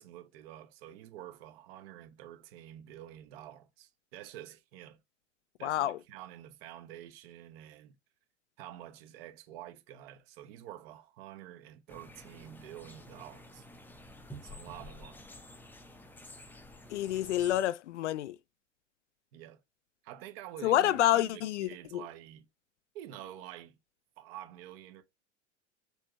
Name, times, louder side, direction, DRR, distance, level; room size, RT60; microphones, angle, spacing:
voice 1, 0.0-5.0 5.6-7.9 8.6-13.6 14.4-15.2 19.3-19.6 20.0-22.5 22.9-23.8 24.2-25.0, right 12 dB, 55° right, 1.1 m, -48 dB
voice 2, 5.6-6.0 16.9-18.4 20.6-22.0, left 13 dB, 70° left, 0.5 m, -28 dB
sound 1, 11.9-17.7, left 1 dB, 5° left, 0.6 m, -50 dB
4.6 x 3.2 x 2.9 m
figure-of-eight pair, 90°, 37 cm